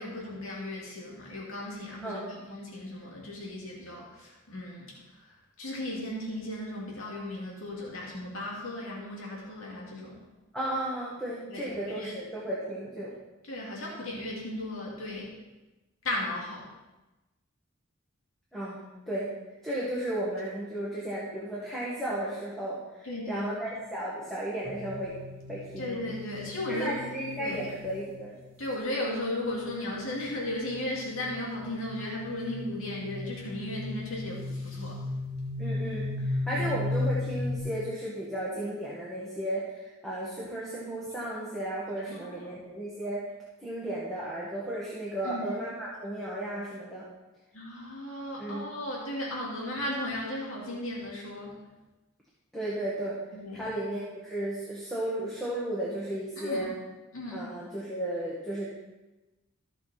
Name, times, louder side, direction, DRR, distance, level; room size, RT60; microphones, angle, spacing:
voice 1, 0.0-4.9 5.2-5.3 5.6-10.2 11.5-12.1 13.5-15.3 16.0-16.7 23.0-23.5 25.8-26.9 27.4-27.7 28.6-35.0 36.5-36.7 42.0-42.5 45.2-45.5 47.5-51.6 53.3-53.7 56.4-56.7 57.1-57.4, left 1 dB, 80° left, -4 dB, 2.4 m, -36 dB
voice 2, 10.5-13.1 18.5-19.3 19.6-25.2 25.5-26.0 26.7-28.3 35.6-43.2 43.6-47.1 48.4-48.7 52.5-53.2 53.5-56.8 57.3-58.7, right 1 dB, ahead, -7 dB, 1.7 m, -34 dB
sound 1, 24.6-28.5 30.0-37.6, left 2 dB, 30° right, 2.3 m, -36 dB
14.5 x 6.0 x 4.2 m, 1.1 s
head